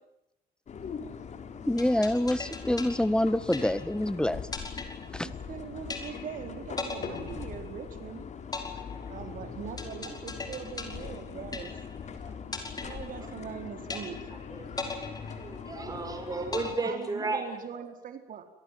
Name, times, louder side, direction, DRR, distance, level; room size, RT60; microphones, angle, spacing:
sound 1, 0.7-16.8, left 6 dB, 45° left, 4.0 m, -41 dB
voice 1, 1.7-4.4 5.1-5.3, left 1 dB, 5° left, 15 dB, 1.7 m, -26 dB
sound 2, 1.8-4.1 4.5-5.5 5.9-6.4 6.8-8.0 8.5-12.1 12.5-13.5 13.9-14.4 14.8-16.0 16.5-17.5, left 4 dB, 20° left, 5.8 m, -39 dB
voice 2, 5.2-8.2 9.1-11.8 12.8-14.2 16.8-18.4, right 8 dB, 55° right, 7 dB, 4.5 m, -41 dB
voice 3, 14.5-17.4, right 3 dB, 20° right, 5 dB, 7.1 m, -34 dB
27.5 x 18.5 x 9.5 m, 0.83 s
cardioid pair, 110°, 17 cm